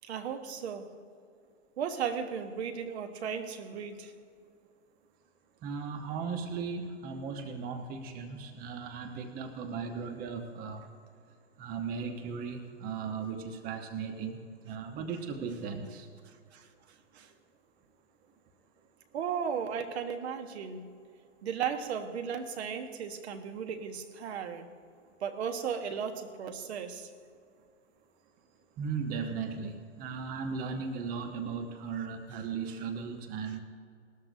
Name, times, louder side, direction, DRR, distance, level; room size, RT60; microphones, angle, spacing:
voice 1, 0.0-0.9 1.8-4.1 16.5-16.7 17.1-17.3 19.1-20.9 21.4-24.7 25.2-27.1, right 7 dB, 60° right, 7 dB, 1.3 m, -35 dB
voice 2, 5.6-10.9 11.6-16.1 28.8-33.6, right 5 dB, 25° right, 6 dB, 0.9 m, -37 dB
19.5 x 13.0 x 2.7 m, 2.2 s
hypercardioid pair, 125°, 37 cm